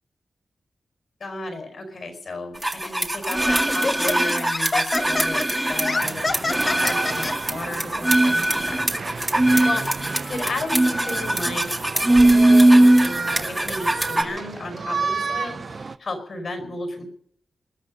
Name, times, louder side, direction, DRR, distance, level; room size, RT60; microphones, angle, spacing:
voice 1, 1.2-9.8 10.3-11.7 12.0-17.0, left 2 dB, 60° left, 6 dB, 5.0 m, -33 dB
sound 1, 2.6-14.2, right 1 dB, 15° right, 1.9 m, -20 dB
Laughter, 2.8-3.0 3.7-7.3, left 3 dB, 40° left, 1.1 m, -27 dB
sound 2, 6.0-16.0, right 4 dB, 50° right, 0.6 m, -32 dB
21.0 x 12.5 x 5.3 m, 0.62 s
wide cardioid pair, 110°, 0 cm